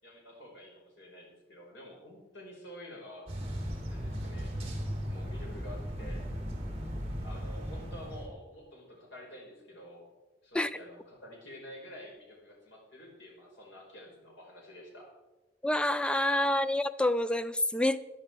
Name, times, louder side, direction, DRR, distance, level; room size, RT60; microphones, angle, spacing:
voice 1, 0.0-3.3 3.9-4.5 5.1-6.3 7.2-10.1 10.4-15.1, left 1 dB, 80° left, -2 dB, 5.3 m, -49 dB
sound 1, 3.3-8.3, equal, 35° right, 3.1 m, -37 dB
voice 2, 15.6-18.0, left 1 dB, 5° left, 13 dB, 0.4 m, -27 dB
14.5 x 10.5 x 4.7 m, 1.1 s
head